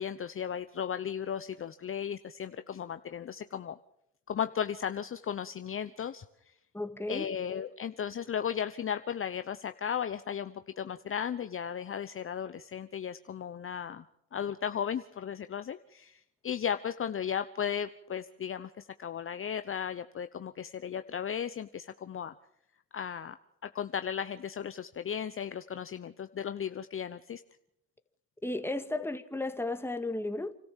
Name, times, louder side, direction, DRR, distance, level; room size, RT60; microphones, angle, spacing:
voice 1, 0.0-3.8 4.3-6.2 7.1-14.1 14.3-22.3 22.9-23.4 23.6-27.4, left 8 dB, 35° left, 0.9 m, -35 dB
voice 2, 6.7-7.3 28.4-30.5, left 2 dB, 5° left, 1.8 m, -34 dB
28.5 x 13.5 x 7.4 m
supercardioid pair, 80°, 36 cm